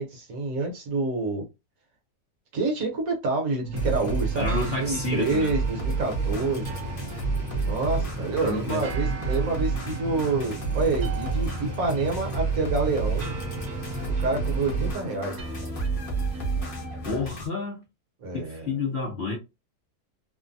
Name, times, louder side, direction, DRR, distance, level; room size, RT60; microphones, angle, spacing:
voice 1, 0.0-1.4 2.5-6.7 7.6-13.3 14.2-15.4 18.2-18.8, right 3 dB, 55° right, 1.2 m, -28 dB
sound 1, 3.6-17.3, right 3 dB, 90° right, 0.6 m, -38 dB
sound 2, 3.7-14.9, equal, 35° right, 0.9 m, -35 dB
sound 3, 3.8-17.5, right 4 dB, 40° left, 0.8 m, -31 dB
voice 2, 4.3-5.5 8.4-8.8 17.0-17.8 18.3-19.4, left 3 dB, 85° left, 0.5 m, -30 dB
3.0 x 2.2 x 2.5 m
omnidirectional pair, 1.9 m